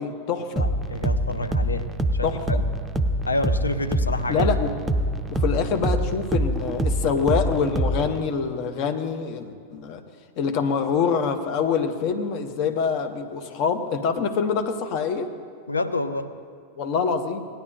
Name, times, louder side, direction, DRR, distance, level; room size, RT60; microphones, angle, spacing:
voice 1, 0.0-0.6 2.2-2.6 4.3-4.7 5.3-10.0 10.4-15.3 16.8-17.4, left 6 dB, 45° left, 6 dB, 0.9 m, -25 dB
voice 2, 0.6-2.6 3.2-4.5 15.7-16.3, left 2 dB, 80° left, 9 dB, 0.5 m, -28 dB
sound 1, 0.6-8.2, right 1 dB, 10° right, 0.6 m, -25 dB
18.5 x 10.0 x 2.7 m, 2.1 s
figure-of-eight pair, 90°, 0 cm